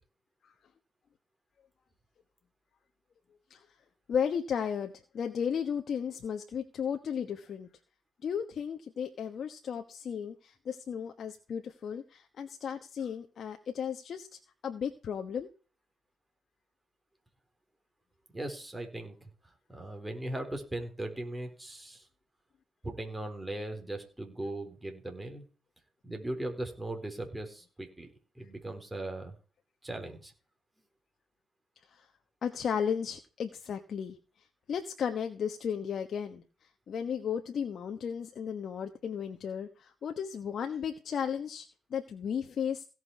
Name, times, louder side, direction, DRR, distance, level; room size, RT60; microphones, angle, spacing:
voice 1, 4.1-7.7 8.2-15.5 31.9-32.1 32.4-42.9, left 7 dB, 55° left, 6 dB, 1.2 m, -35 dB
voice 2, 18.3-19.3 19.7-22.1 22.8-25.4 26.0-28.1 28.4-29.4 29.8-30.3, right 1 dB, 15° right, 4 dB, 4.1 m, -38 dB
16.5 x 6.1 x 4.7 m, 0.37 s
cardioid pair, 90°, 0 cm